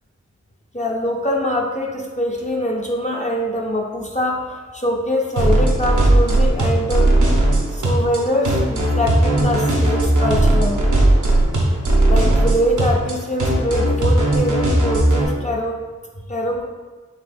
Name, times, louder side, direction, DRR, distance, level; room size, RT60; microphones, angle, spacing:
voice 1, 0.7-7.1 7.7-10.8 12.1-15.8 16.3-16.7, left 1 dB, 25° left, -2 dB, 0.5 m, -23 dB
sound 1, 5.4-15.2, right 1 dB, 85° right, 0.8 m, -17 dB
5.6 x 3.2 x 2.6 m, 1.4 s
wide cardioid pair, 55°, 30 cm